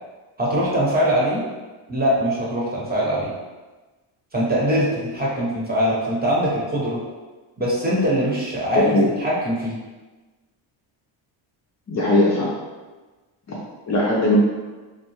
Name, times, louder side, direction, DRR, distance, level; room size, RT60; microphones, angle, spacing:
voice 1, 0.4-1.4 1.9-3.3 4.3-7.0 7.6-9.8, equal, 20° right, -6 dB, 0.9 m, -22 dB
voice 2, 11.9-12.5 13.9-14.4, left 2 dB, 35° left, -5 dB, 0.6 m, -19 dB
2.7 x 2.1 x 3.0 m, 1.2 s
cardioid pair, 95°, 50 cm